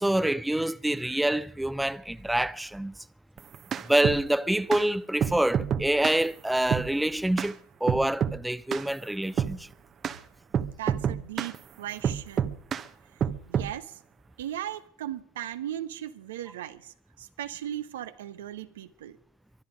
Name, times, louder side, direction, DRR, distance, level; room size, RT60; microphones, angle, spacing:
voice 1, 0.0-2.9 3.9-7.5 7.8-9.6, right 1 dB, 5° right, 0.5 m, -26 dB
sound 1, 3.4-4.2 4.7-4.8 5.2-6.2 6.7-6.9 7.4-7.5 7.9-8.4 8.7-8.9 9.4-9.6 10.0-10.2 10.5-11.6 12.0-12.9 13.2-13.7, right 8 dB, 35° right, 1.0 m, -28 dB
voice 2, 10.8-12.6 13.5-14.0 14.4-19.2, right 11 dB, 90° right, 1.1 m, -37 dB
23.5 x 11.5 x 5.1 m
supercardioid pair, 100°, 0 cm